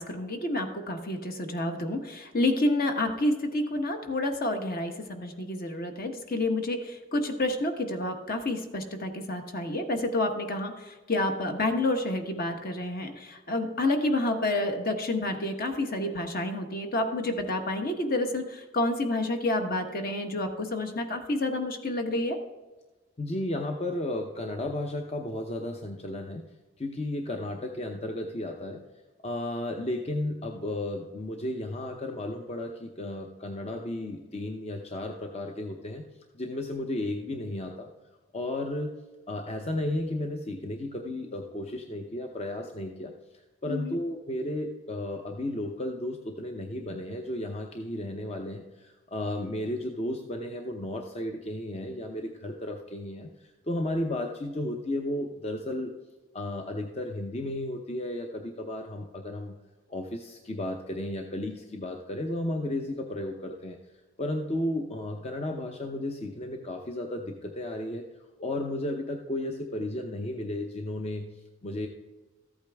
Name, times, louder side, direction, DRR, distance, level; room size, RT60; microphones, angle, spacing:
voice 1, 0.0-22.4 43.7-44.0, left 2 dB, 50° left, 5 dB, 1.2 m, -29 dB
voice 2, 23.2-26.4 26.8-28.8 29.2-36.0 36.3-37.9 38.3-38.9 39.3-55.9 56.3-59.6 59.9-63.9 64.2-68.0 68.4-71.9, left 1 dB, 35° left, 3 dB, 0.7 m, -33 dB
14.0 x 8.6 x 3.5 m, 1.2 s
head